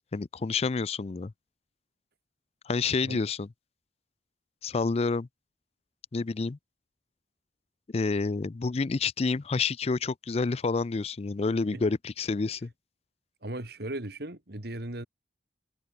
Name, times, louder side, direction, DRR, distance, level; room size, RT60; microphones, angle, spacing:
voice 1, 0.1-1.3 2.7-3.5 4.6-5.3 6.1-6.6 7.9-12.7, left 4 dB, 35° left, 0.4 m, -28 dB
voice 2, 13.4-15.1, right 1 dB, 60° right, 2.5 m, -37 dB
head